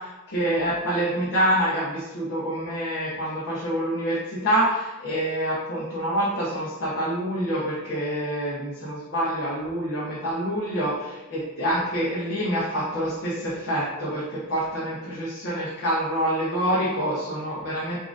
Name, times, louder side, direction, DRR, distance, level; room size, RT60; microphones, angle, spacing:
voice 1, 0.3-18.0, equal, 55° left, -7 dB, 1.0 m, -26 dB
6.6 x 2.6 x 2.6 m, 1.1 s
head